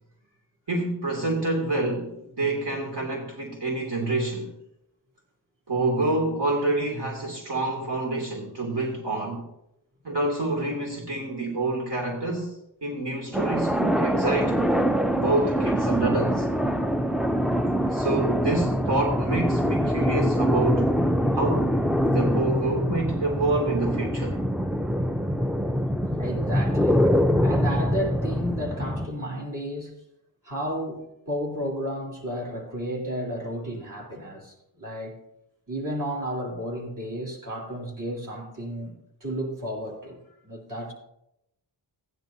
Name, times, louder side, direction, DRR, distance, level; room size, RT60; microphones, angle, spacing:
voice 1, 0.7-4.5 5.7-9.4 10.0-12.5 12.8-14.6 15.1-16.5 17.8-20.9 21.3-24.4, right 2 dB, 65° right, 2.7 m, -27 dB
sound 1, 13.3-29.1, equal, ahead, 0.4 m, -24 dB
voice 2, 26.0-27.0 27.4-29.9 30.4-35.1 35.7-40.9, equal, 45° right, 3.3 m, -32 dB
15.5 x 10.5 x 2.7 m
wide cardioid pair, 95°, 43 cm